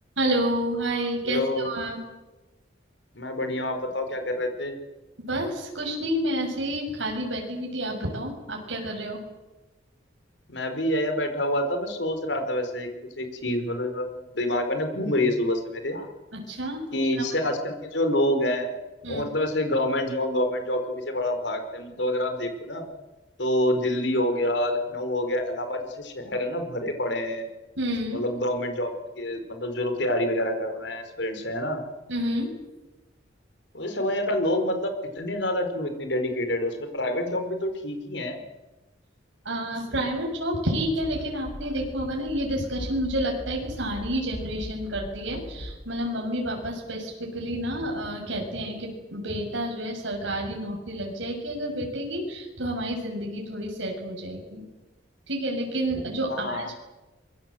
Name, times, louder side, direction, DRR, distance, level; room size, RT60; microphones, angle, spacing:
voice 1, 0.2-2.0 5.2-9.2 16.3-16.9 19.0-19.2 27.8-28.2 32.1-32.5 39.4-54.6 55.3-56.7, right 1 dB, 90° right, 0 dB, 6.8 m, -29 dB
voice 2, 1.2-1.7 3.1-4.7 10.5-12.9 13.2-16.1 16.9-18.7 19.1-22.8 23.4-27.4 28.1-31.8 33.7-38.4 56.3-56.7, left 1 dB, 65° left, 6 dB, 4.8 m, -27 dB
sound 1, 40.9-45.8, left 1 dB, 85° left, 5.0 m, -39 dB
25.5 x 22.5 x 7.8 m, 1.1 s
head